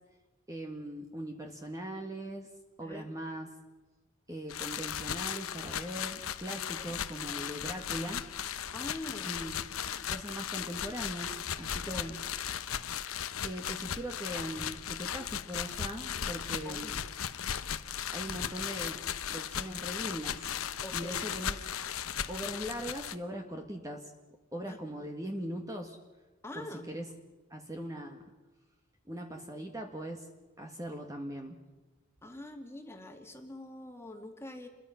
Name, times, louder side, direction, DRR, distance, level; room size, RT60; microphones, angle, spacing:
voice 1, 0.5-2.5 2.8-3.5 4.3-8.2 9.2-9.6 10.1-12.2 13.3-17.0 18.1-19.0 19.3-20.5 20.9-21.6 22.3-24.1 24.5-26.0 26.6-27.1 27.5-28.3 29.1-30.3 30.6-31.6, right 1 dB, 15° right, 3 dB, 1.7 m, -40 dB
sound 1, 4.5-23.1, left 9 dB, 80° left, 0.9 m, -37 dB
voice 2, 6.5-7.0 8.7-9.4 11.7-12.1 16.6-16.8 20.8-21.2 24.7-24.8 26.4-26.8 32.2-34.7, left 1 dB, 10° left, 4 dB, 2.4 m, -44 dB
29.0 x 22.0 x 5.9 m, 1.2 s
head